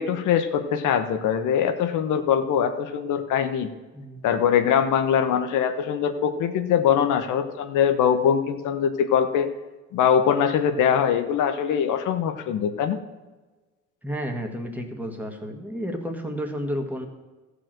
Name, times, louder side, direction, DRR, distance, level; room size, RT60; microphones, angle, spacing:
voice 1, 0.0-3.7 4.2-9.5 9.9-13.0, left 8 dB, 85° left, 8 dB, 1.0 m, -22 dB
voice 2, 14.0-17.1, equal, 5° right, 3 dB, 1.8 m, -31 dB
13.5 x 5.0 x 7.6 m, 1.2 s
cardioid pair, 90°, 30 cm